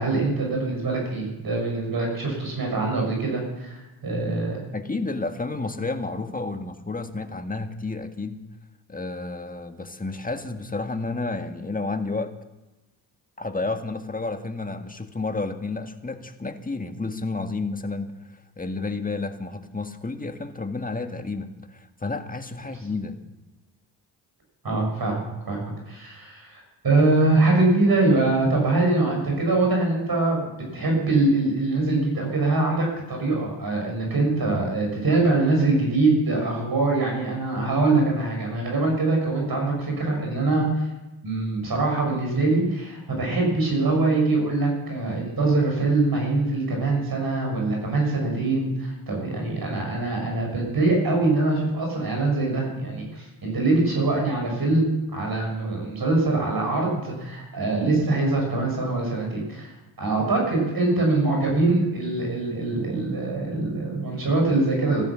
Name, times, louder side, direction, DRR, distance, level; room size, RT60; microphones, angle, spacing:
voice 1, 0.0-4.6 24.6-25.6 25.9-40.9 41.2-65.0, right 2 dB, 50° right, 0 dB, 6.7 m, -23 dB
voice 2, 4.7-8.4 8.9-12.3 13.4-23.2, left 3 dB, 15° left, 7 dB, 1.7 m, -31 dB
14.0 x 12.5 x 6.2 m, 1.0 s
supercardioid pair, 50°, 48 cm